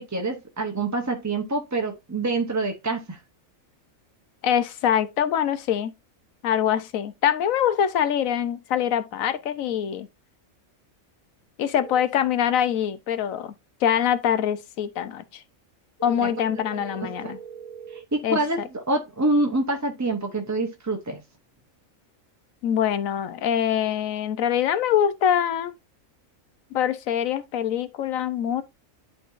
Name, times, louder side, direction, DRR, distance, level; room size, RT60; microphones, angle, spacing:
voice 1, 0.0-3.2 16.2-16.3 16.7-17.0 17.2-17.3 17.9-21.2, right 2 dB, 20° right, 0.6 m, -26 dB
voice 2, 4.4-5.9 6.4-10.1 11.6-13.5 13.8-15.4 16.0-17.4 18.2-18.4 22.6-25.7 26.7-28.6, left 9 dB, 80° left, 1.1 m, -24 dB
sound 1, 11.7-12.0 16.0-18.0, right 8 dB, 10° left, 2.1 m, -41 dB
10.5 x 3.8 x 2.5 m
omnidirectional pair, 1.4 m